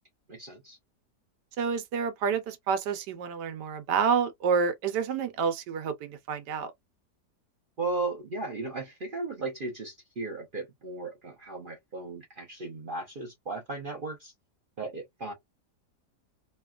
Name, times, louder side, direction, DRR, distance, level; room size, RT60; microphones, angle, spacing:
voice 1, 0.3-0.8 7.8-14.3 14.8-15.3, right 3 dB, 55° right, 0.5 m, -36 dB
voice 2, 1.6-6.7, right 6 dB, 85° right, 1.3 m, -29 dB
3.1 x 2.3 x 2.3 m
omnidirectional pair, 1.8 m